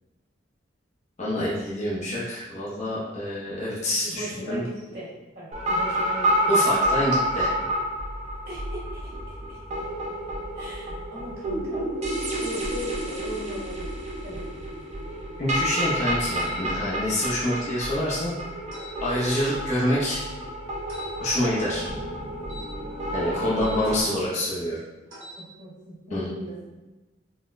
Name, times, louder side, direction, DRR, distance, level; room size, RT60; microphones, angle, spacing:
voice 1, 1.2-4.6 6.5-7.5 15.4-18.3 19.0-20.2 21.2-21.9 23.1-24.8 26.1-26.3, left 1 dB, 40° left, -8 dB, 0.6 m, -26 dB
voice 2, 4.0-5.1 5.3-6.6 8.4-9.8 10.5-11.9 12.4-13.9 14.2-14.5 23.4-24.3 25.3-26.6, equal, 60° right, -8 dB, 1.5 m, -38 dB
sound 1, 5.5-24.0, right 1 dB, 40° right, 0.5 m, -29 dB
sound 2, 16.4-16.7 18.7-18.9 20.9-21.1 22.4-23.8 25.1-25.4, left 1 dB, 80° right, 1.0 m, -43 dB
3.8 x 2.1 x 2.4 m, 1.1 s
head